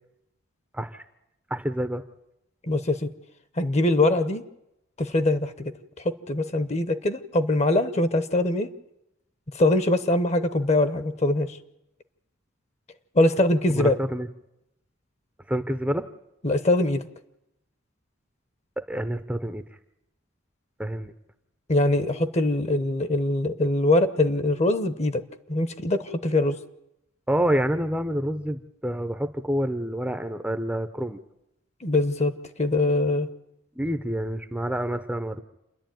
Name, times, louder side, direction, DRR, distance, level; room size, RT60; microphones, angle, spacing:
voice 1, 0.7-1.0 1.5-2.0 13.7-14.3 15.5-16.1 18.8-19.6 20.8-21.1 27.3-31.2 33.8-35.4, right 1 dB, 5° right, 9 dB, 0.7 m, -28 dB
voice 2, 2.7-3.1 3.6-4.4 5.0-8.7 9.5-11.6 13.1-14.0 16.4-17.1 21.7-25.2 25.5-26.6 31.8-33.3, left 2 dB, 35° left, 12 dB, 0.9 m, -23 dB
28.0 x 11.0 x 9.2 m, 0.89 s
head